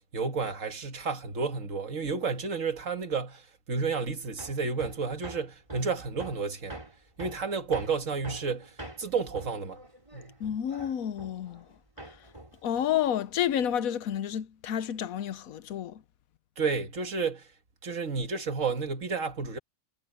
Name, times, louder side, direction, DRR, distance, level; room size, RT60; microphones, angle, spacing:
voice 1, 0.1-6.8 7.2-9.8 10.1-10.4 16.6-17.5 17.8-19.6, right 5 dB, 65° right, 2.0 m, -31 dB
Hammer, 4.4-11.7 12.0-13.7, right 1 dB, 20° right, 4.0 m, -45 dB
voice 2, 10.4-11.7 12.0-12.2 12.6-16.0, left 10 dB, 80° left, 1.2 m, -30 dB
omnidirectional pair, 1.5 m